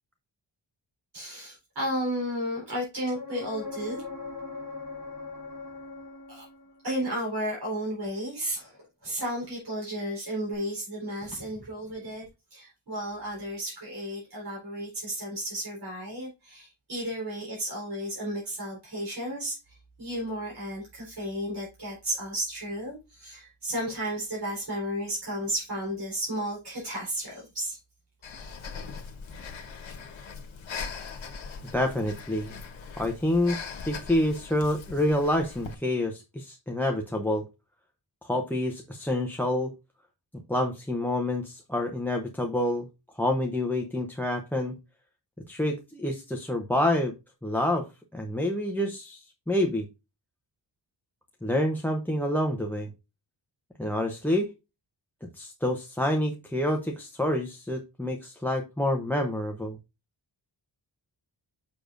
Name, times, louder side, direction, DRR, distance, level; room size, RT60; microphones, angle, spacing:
voice 1, 1.1-4.0 6.3-6.4 6.8-27.8, equal, 55° right, -4 dB, 4.3 m, -33 dB
sound 1, 3.1-6.9 10.5-10.6, left 3 dB, 45° left, 1.8 m, -40 dB
Breathing, 28.2-35.7, left 5 dB, 90° left, 1.2 m, -40 dB
voice 2, 31.7-32.6 33.0-33.6 33.8-37.4 38.2-39.7 40.5-42.9 43.2-44.7 45.5-47.2 47.4-47.9 48.1-49.9 51.4-52.9 53.8-54.5 55.3-59.8, left 1 dB, 5° left, 4 dB, 0.7 m, -27 dB
6.9 x 6.5 x 2.5 m, 0.26 s
wide cardioid pair, 135°, 46 cm